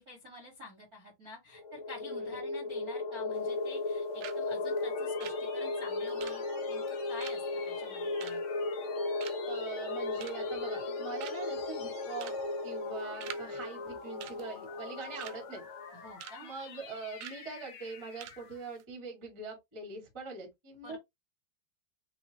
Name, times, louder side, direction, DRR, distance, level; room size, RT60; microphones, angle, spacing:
voice 1, 0.0-8.4 15.9-16.5 20.8-21.0, left 1 dB, 65° right, 0.9 m, -49 dB
sound 1, 1.5-15.9, left 3 dB, 50° left, 1.4 m, -36 dB
voice 2, 2.1-2.4 9.5-12.3 12.6-15.7 16.4-21.0, right 4 dB, 45° right, 0.3 m, -43 dB
sound 2, 3.3-3.9 4.2-4.4 4.7-8.9 9.2-9.6 10.0-10.6 10.9-11.0 11.2-11.6 12.1-12.4 12.7-13.5 13.7-13.9 14.2-15.4 15.8-16.4 16.7-16.8 17.2-17.4 17.8-17.9 18.2-18.4 18.7-18.8, right 13 dB, 85° right, 2.2 m, -47 dB
sound 3, 4.0-18.7, left 7 dB, 85° left, 1.6 m, -50 dB
6.8 x 2.4 x 3.0 m
omnidirectional pair, 5.1 m